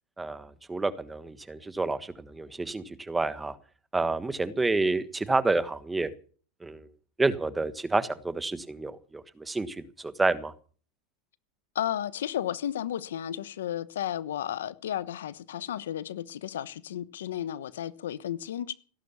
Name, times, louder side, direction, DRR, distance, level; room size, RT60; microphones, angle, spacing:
voice 1, 0.2-3.6 3.9-6.1 6.6-6.9 7.2-10.5, right 3 dB, 10° right, 1.5 m, -29 dB
voice 2, 11.7-18.7, left 10 dB, 85° left, 1.1 m, -33 dB
17.0 x 11.5 x 7.1 m
supercardioid pair, 125°, 0 cm